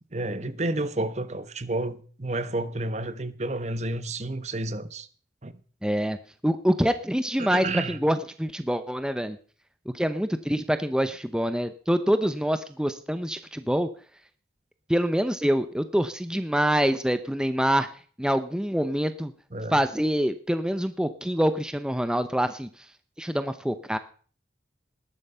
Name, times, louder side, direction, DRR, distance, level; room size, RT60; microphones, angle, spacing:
voice 1, 0.1-5.1 5.4-5.5 7.4-8.0 19.5-19.8, right 2 dB, 40° right, 1.1 m, -30 dB
voice 2, 5.8-6.2 6.4-9.4 9.9-13.9 14.9-17.9 18.2-19.3 19.7-22.7 23.2-24.0, equal, 5° right, 0.8 m, -25 dB
19.5 x 11.0 x 5.6 m
head